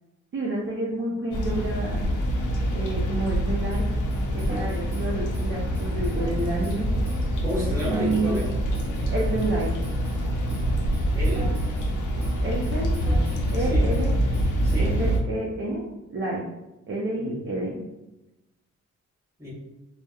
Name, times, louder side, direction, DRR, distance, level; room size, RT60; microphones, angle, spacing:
voice 1, 0.3-2.0 2.7-3.9 4.3-6.9 7.8-8.4 9.1-9.7 12.4-12.9 13.5-14.1 14.8-15.8 16.1-16.4 16.9-17.8, right 2 dB, 40° right, -4 dB, 0.5 m, -29 dB
sound 1, 1.3-15.2, equal, 90° left, 0.5 m, -25 dB
sound 2, 3.7-10.2 10.5-11.9 12.2-13.6 13.9-14.1 14.3-14.8, right 1 dB, 5° left, 1.3 m, -40 dB
voice 2, 7.4-8.5 11.1-11.6 13.6-13.9 14.6-15.0 17.2-17.4 19.4-19.5, equal, 10° right, -6 dB, 1.0 m, -31 dB
2.7 x 2.0 x 2.3 m, 0.97 s
cardioid pair, 85°, 30 cm